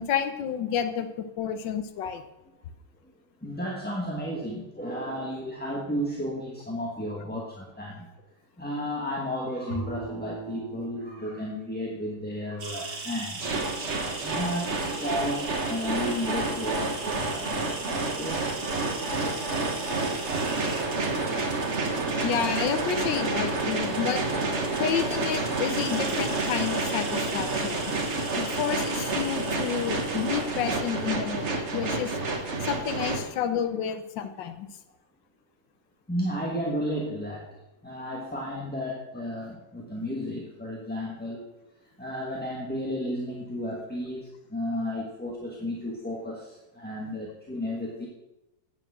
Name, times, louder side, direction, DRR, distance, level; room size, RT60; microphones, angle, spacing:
voice 1, 0.0-2.2 22.2-24.2 24.8-27.8 28.3-32.2 32.6-34.7, left 8 dB, 85° left, 9 dB, 1.5 m, -30 dB
voice 2, 3.4-8.1 8.6-13.5 14.2-18.5 36.1-37.5 37.8-41.5 42.0-48.1, equal, 5° left, -3 dB, 1.2 m, -33 dB
Bowed string instrument, 9.7-13.9, right 4 dB, 85° right, 2.2 m, -41 dB
sound 1, 12.6-31.0, right 3 dB, 60° right, 2.3 m, -40 dB
sound 2, 13.4-33.2, right 3 dB, 40° right, 1.5 m, -29 dB
8.9 x 7.8 x 6.3 m, 0.93 s
omnidirectional pair, 1.9 m